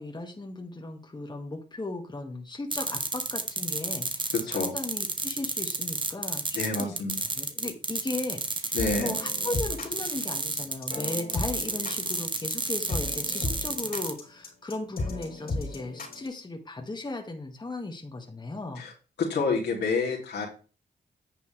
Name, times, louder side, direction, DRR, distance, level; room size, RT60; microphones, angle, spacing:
voice 1, 0.0-6.9 7.4-18.8, left 2 dB, 25° left, 2 dB, 2.2 m, -36 dB
sound 1, 2.7-14.1, right 3 dB, 25° right, 1.5 m, -31 dB
voice 2, 4.3-4.7 6.5-7.2 8.7-9.1 18.8-18.9 19.2-20.5, left 4 dB, 75° left, -3 dB, 3.1 m, -28 dB
sound 2, 8.8-16.3, left 2 dB, 55° left, 3.4 m, -35 dB
10.0 x 6.8 x 3.4 m, 0.36 s
supercardioid pair, 50°, 18 cm